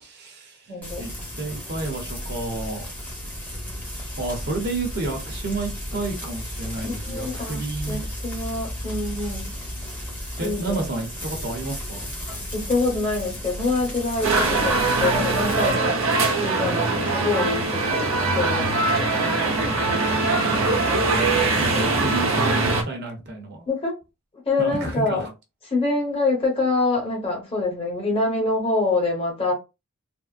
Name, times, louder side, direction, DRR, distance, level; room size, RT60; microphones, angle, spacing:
voice 1, 0.0-0.7 1.0-1.1 1.4-2.8 4.2-8.0 10.4-12.1 21.6-23.7 24.6-25.3, right 3 dB, 50° right, 0.9 m, -30 dB
voice 2, 0.7-1.1 6.8-9.5 10.4-10.8 12.3-16.0 16.4-19.6 19.9-20.1 23.7-23.9 24.4-25.3 25.7-29.5, left 3 dB, 25° left, 1.1 m, -26 dB
Frying (food), 0.8-15.7, equal, 10° left, 0.9 m, -34 dB
sound 1, 14.2-22.8, right 3 dB, 75° right, 0.9 m, -22 dB
3.5 x 2.0 x 2.5 m
head